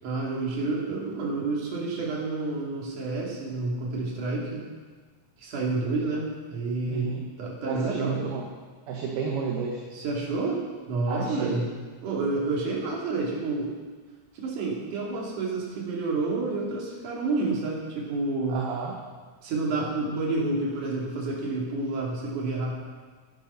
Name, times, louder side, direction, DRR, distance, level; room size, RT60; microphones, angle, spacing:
voice 1, 0.0-4.7 5.4-8.3 9.9-11.7 12.0-13.7 14.3-18.6 19.4-22.7, right 3 dB, 50° right, -3 dB, 3.9 m, -29 dB
voice 2, 6.9-7.2 7.7-8.4 8.9-9.8 11.1-11.6 18.5-19.0, right 6 dB, 70° right, -1 dB, 3.1 m, -31 dB
15.5 x 10.5 x 5.6 m, 1.4 s
omnidirectional pair, 5.0 m